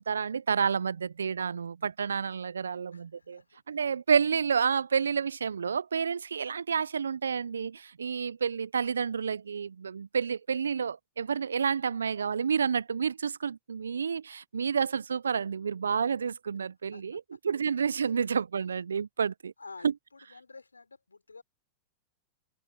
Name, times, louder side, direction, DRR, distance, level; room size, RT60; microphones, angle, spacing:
voice 1, 0.0-3.4 3.7-19.5 19.8-19.9, right 6 dB, 80° right, 0.5 m, -30 dB
voice 2, 2.9-3.6 16.9-17.4 18.2-18.3 19.6-21.4, left 4 dB, 90° left, 5.3 m, -50 dB
figure-of-eight pair, 95°, 0 cm